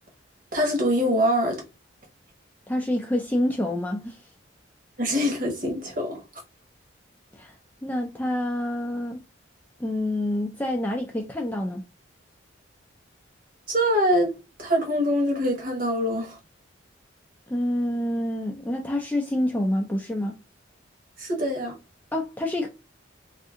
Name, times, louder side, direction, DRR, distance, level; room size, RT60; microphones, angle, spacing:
voice 1, 0.5-1.6 5.0-6.2 13.7-16.4 21.2-21.7, equal, 45° right, 1.0 m, -24 dB
voice 2, 2.7-4.2 7.3-7.5 7.8-9.2 9.8-11.8 17.5-20.4 22.1-22.7, left 1 dB, 10° left, 0.3 m, -27 dB
2.6 x 2.5 x 3.5 m
head